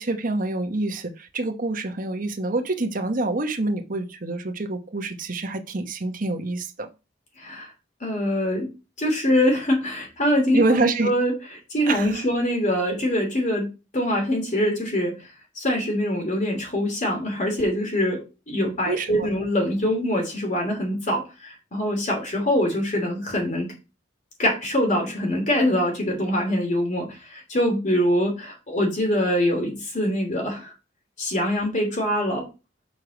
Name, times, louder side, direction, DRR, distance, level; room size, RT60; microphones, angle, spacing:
voice 1, 0.0-6.9 10.5-11.1 11.9-12.2 18.9-19.4, right 2 dB, 50° right, 1.0 m, -26 dB
voice 2, 7.4-7.7 8.0-8.7 9.0-11.3 11.7-13.7 13.9-15.2 15.6-23.7 24.4-30.7 31.2-32.5, equal, 40° left, 2.8 m, -24 dB
7.0 x 4.6 x 5.1 m
head